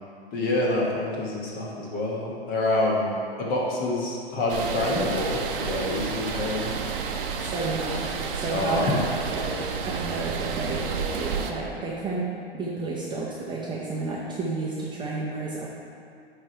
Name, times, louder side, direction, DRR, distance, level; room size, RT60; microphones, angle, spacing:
voice 1, 0.3-6.8 8.5-9.0, left 2 dB, 30° left, -3 dB, 1.5 m, -27 dB
sound 1, 4.5-11.5, right 5 dB, 55° right, 0.8 m, -30 dB
voice 2, 7.4-9.6 9.8-12.3 12.5-15.7, right 3 dB, 15° right, -5 dB, 0.7 m, -31 dB
9.3 x 3.4 x 4.4 m, 2.5 s
hypercardioid pair, 115°, 31 cm